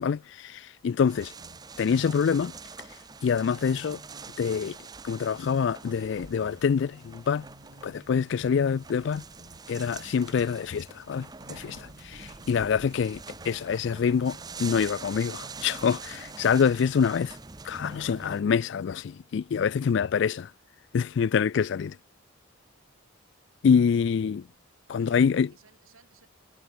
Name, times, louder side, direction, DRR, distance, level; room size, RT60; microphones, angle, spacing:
voice 1, 0.0-1.3 1.8-2.5 3.2-4.0 4.4-4.8 5.0-7.4 7.8-9.2 9.7-13.2 13.4-17.4 17.6-20.5 20.9-22.0 23.6-24.4 24.9-25.5, left 6 dB, 55° left, 0.3 m, -26 dB
sound 1, 1.1-18.4, right 4 dB, 20° right, 0.6 m, -45 dB
sound 2, 1.4-2.6 3.4-4.7 5.4-6.6 7.4-8.6 9.4-10.6 11.4-12.6 13.4-14.6 15.4-16.7 17.4-17.5, right 1 dB, 55° right, 3.7 m, -53 dB
voice 2, 24.0-24.7 25.0-26.3, right 4 dB, 85° right, 7.1 m, -62 dB
head